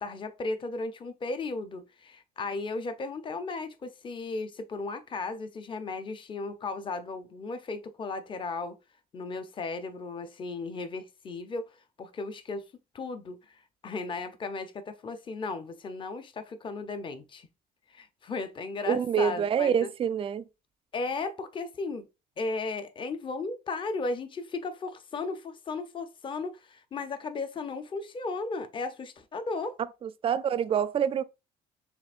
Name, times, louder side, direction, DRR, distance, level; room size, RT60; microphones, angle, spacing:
voice 1, 0.0-8.8 9.1-12.6 12.9-13.6 13.8-17.5 17.9-19.9 20.9-22.1 22.4-29.8, left 3 dB, 30° left, 0.6 m, -35 dB
voice 2, 18.9-20.4 30.0-31.2, right 8 dB, 35° right, 0.4 m, -26 dB
6.7 x 2.4 x 2.4 m
cardioid pair, 110°, 17 cm